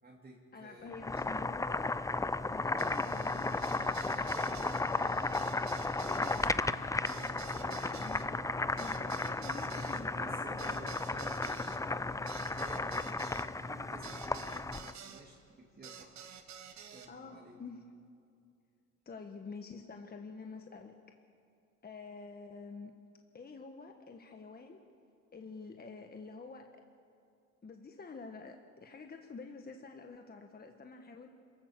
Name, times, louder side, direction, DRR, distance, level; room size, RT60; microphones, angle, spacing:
voice 1, 0.0-1.0 4.1-5.0 5.9-6.6 7.0-7.9 10.1-16.2 16.9-17.6, right 2 dB, 30° right, -3 dB, 2.8 m, -53 dB
voice 2, 0.5-2.0 2.5-3.5 6.0-6.5 7.7-8.2 8.7-10.8 17.1-17.8 19.0-21.0 21.8-22.9 23.3-24.8 25.3-26.7 27.6-31.3, left 4 dB, 30° left, 4 dB, 1.4 m, -48 dB
Boiling, 0.9-14.9, left 3 dB, 10° left, 0.5 m, -34 dB
sound 1, 2.8-15.2 15.8-17.1, right 7 dB, 65° right, 1.7 m, -51 dB
27.5 x 16.0 x 6.7 m, 2.4 s
cardioid pair, 90°, 30 cm